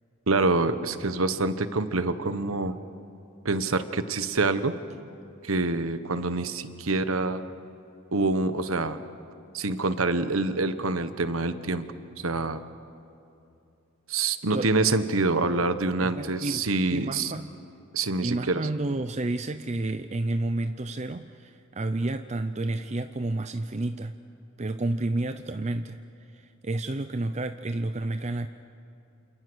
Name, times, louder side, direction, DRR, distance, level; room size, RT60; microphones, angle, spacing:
voice 1, 0.3-2.7 3.4-4.7 5.4-7.4 8.1-9.0 9.5-11.9 12.2-12.6 14.1-17.3 17.9-18.7, right 3 dB, 85° right, 11 dB, 1.2 m, -26 dB
voice 2, 16.0-17.6 18.2-24.1 24.6-26.0 26.3-28.5, right 2 dB, 35° right, 9 dB, 0.6 m, -30 dB
28.5 x 28.5 x 6.3 m, 2.6 s
head